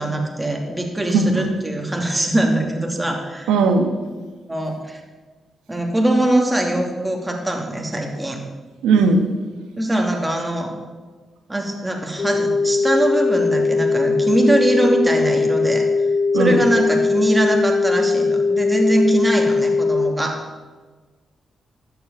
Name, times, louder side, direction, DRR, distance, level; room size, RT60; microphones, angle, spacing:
voice 1, 0.0-3.5 4.5-5.0 5.7-8.4 9.8-10.7 11.5-15.8 16.3-20.4, right 1 dB, 15° right, 1 dB, 2.7 m, -22 dB
voice 2, 1.1-1.5 3.5-3.9 8.8-9.2 16.3-16.6, right 4 dB, 90° right, 6 dB, 1.3 m, -17 dB
sound 1, 12.2-20.1, left 4 dB, 55° left, 0.9 m, -19 dB
13.0 x 6.9 x 7.0 m, 1.4 s
supercardioid pair, 55°, 0 cm